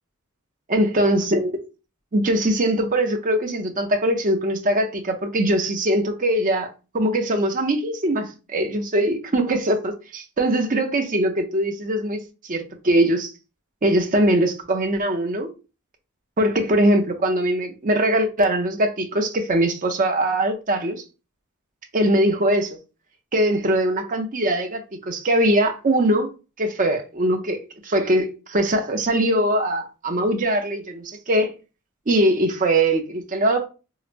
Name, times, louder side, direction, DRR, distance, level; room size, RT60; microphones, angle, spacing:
voice 1, 0.7-1.5 2.1-6.7 6.9-12.2 12.5-13.3 13.8-15.5 16.4-21.0 21.9-22.8 23.3-24.8 25.1-26.3 26.6-27.6 27.8-31.5 32.1-33.7, right 1 dB, 35° right, 0.7 m, -21 dB
4.7 x 2.1 x 2.5 m
head